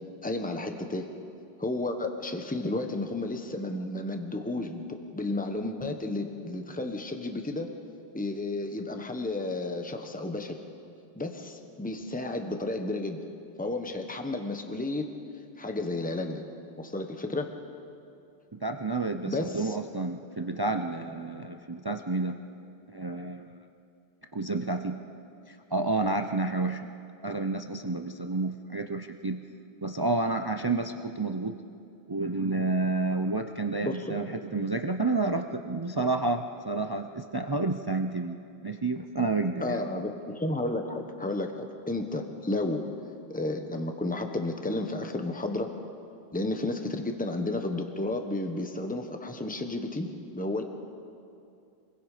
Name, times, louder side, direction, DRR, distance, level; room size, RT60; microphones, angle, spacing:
voice 1, 0.2-1.1 1.6-7.7 8.1-10.6 11.1-13.2 13.6-15.1 15.6-16.4 16.8-17.5 19.2-19.8 33.8-34.2 39.6-42.8 43.3-45.7 46.3-50.6, left 2 dB, 10° left, 5 dB, 1.2 m, -32 dB
voice 2, 18.5-22.4 22.9-23.6 24.3-25.0 25.5-26.9 27.2-29.4 29.8-31.6 32.1-38.4 38.6-39.9, right 3 dB, 25° right, 6 dB, 0.6 m, -30 dB
28.0 x 22.0 x 5.1 m, 2.5 s
omnidirectional pair, 1.1 m